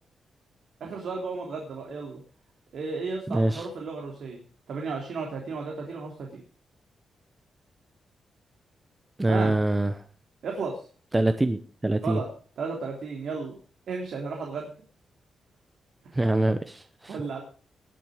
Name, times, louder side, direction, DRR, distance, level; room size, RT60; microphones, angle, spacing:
voice 1, 0.8-2.2 2.7-6.4 9.3-9.6 10.4-10.9 12.0-12.3 12.6-13.6 13.9-14.7 16.0-16.1 17.1-17.4, right 4 dB, 65° right, 0 dB, 3.3 m, -34 dB
voice 2, 3.3-3.7 9.2-9.9 11.1-12.2 16.2-17.1, right 2 dB, 15° right, 9 dB, 0.8 m, -24 dB
20.0 x 7.6 x 4.9 m, 0.40 s
wide cardioid pair, 150°, 0 cm